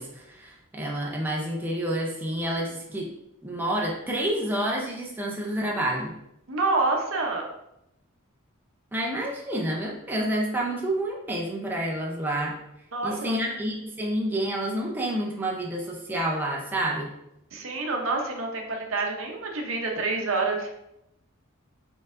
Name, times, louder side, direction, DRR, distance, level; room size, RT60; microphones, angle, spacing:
voice 1, 0.0-3.1 3.4-6.1 8.9-12.6 13.0-17.1, right 1 dB, 10° right, -2 dB, 0.5 m, -29 dB
voice 2, 6.5-7.5 12.9-13.4 17.5-20.7, right 3 dB, 70° right, 2 dB, 0.7 m, -27 dB
4.2 x 3.9 x 2.5 m, 0.83 s
head